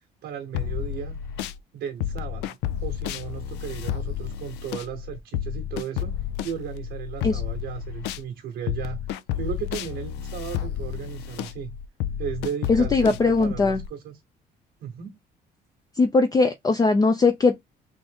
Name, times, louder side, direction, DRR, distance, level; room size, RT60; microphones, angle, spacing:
voice 1, 0.2-1.2 1.7-9.1 9.4-11.7 12.2-14.2 14.8-15.2, right 8 dB, 80° right, 0.9 m, -35 dB
sound 1, 0.5-1.6 2.0-8.3 8.7-13.9, left 10 dB, 90° left, 0.4 m, -31 dB
voice 2, 12.7-13.8 16.0-17.6, left 3 dB, 20° left, 0.5 m, -20 dB
3.6 x 2.5 x 3.5 m
cardioid pair, 110°, 17 cm